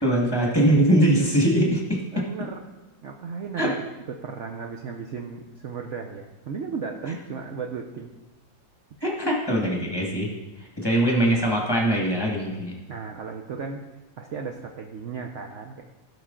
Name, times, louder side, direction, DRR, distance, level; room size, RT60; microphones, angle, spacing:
voice 1, 0.0-2.0 3.6-3.7 9.0-10.3 10.6-12.7, right 1 dB, 15° left, -2 dB, 1.6 m, -22 dB
voice 2, 2.1-2.6 3.0-8.1 12.9-13.9 14.2-15.8, right 5 dB, 60° right, 3 dB, 0.8 m, -35 dB
17.0 x 5.6 x 3.8 m, 1.1 s
omnidirectional pair, 2.0 m